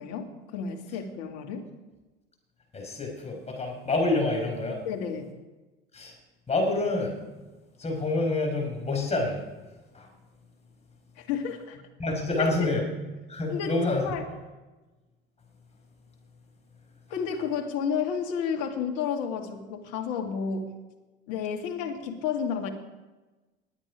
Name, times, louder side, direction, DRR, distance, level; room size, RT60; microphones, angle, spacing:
voice 1, 0.0-1.7 4.8-5.3 11.2-11.8 12.3-12.7 13.5-14.2 17.1-20.7 21.3-22.7, left 6 dB, 55° left, 3 dB, 2.3 m, -31 dB
voice 2, 2.7-4.8 5.9-6.1 6.5-7.2 7.8-9.4 9.9-10.1 12.0-12.8 13.3-14.1, left 2 dB, 20° left, 0 dB, 5.3 m, -27 dB
20.5 x 8.9 x 5.0 m, 1.2 s
figure-of-eight pair, 65°, 30 cm